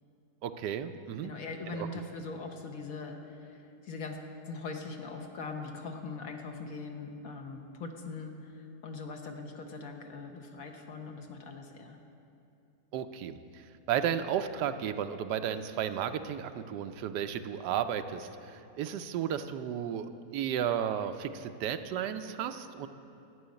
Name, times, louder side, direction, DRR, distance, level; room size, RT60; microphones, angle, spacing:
voice 1, 0.4-1.3 1.7-1.9 12.9-13.4 13.9-22.9, right 9 dB, 85° right, 10 dB, 1.2 m, -33 dB
voice 2, 1.2-3.2 3.8-4.2 4.5-8.3 8.8-12.0, left 3 dB, 60° left, 3 dB, 1.3 m, -41 dB
12.5 x 6.3 x 9.3 m, 2.7 s
omnidirectional pair, 1.8 m